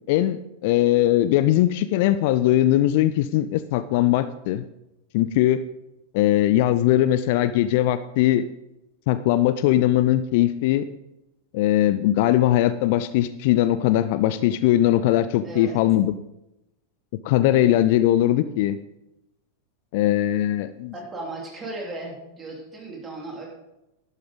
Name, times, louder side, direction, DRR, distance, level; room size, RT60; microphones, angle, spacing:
voice 1, 0.1-4.6 5.1-5.6 6.1-8.5 9.1-10.9 11.5-16.1 17.2-18.8 19.9-20.9, left 13 dB, 50° left, 14 dB, 0.4 m, -20 dB
voice 2, 15.4-15.8 17.5-17.7 20.9-23.5, right 2 dB, 15° right, -2 dB, 3.7 m, -36 dB
11.5 x 11.5 x 3.9 m, 0.91 s
figure-of-eight pair, 90°, 0 cm